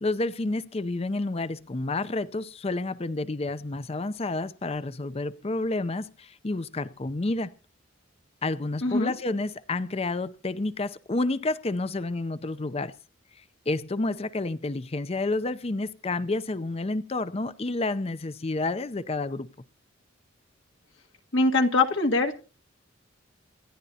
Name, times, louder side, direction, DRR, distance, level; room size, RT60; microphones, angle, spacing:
voice 1, 0.0-7.5 8.4-13.0 13.7-19.5, left 2 dB, 30° left, 0.6 m, -30 dB
voice 2, 8.8-9.1 21.3-22.3, left 3 dB, 75° left, 1.8 m, -22 dB
27.5 x 10.5 x 2.8 m
head